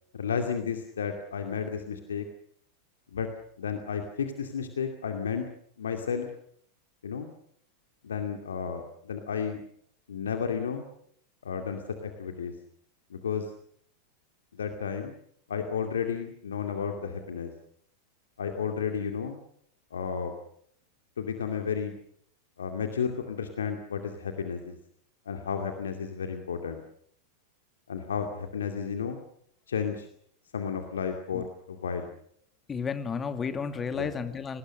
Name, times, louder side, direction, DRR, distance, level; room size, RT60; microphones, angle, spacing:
voice 1, 0.1-2.3 3.1-3.3 3.6-5.5 5.8-6.3 7.0-7.3 8.0-9.6 10.1-10.8 11.4-12.5 13.1-13.5 14.5-15.1 15.5-17.5 18.4-19.4 19.9-20.4 21.2-21.9 22.6-24.8 25.3-26.8 27.9-29.2 29.7-30.1 30.5-32.1 33.9-34.1, left 6 dB, 65° left, 5 dB, 2.4 m, -32 dB
voice 2, 32.7-34.6, left 5 dB, 20° left, 9 dB, 2.4 m, -32 dB
27.5 x 20.0 x 6.6 m, 0.66 s
figure-of-eight pair, 90°, 0 cm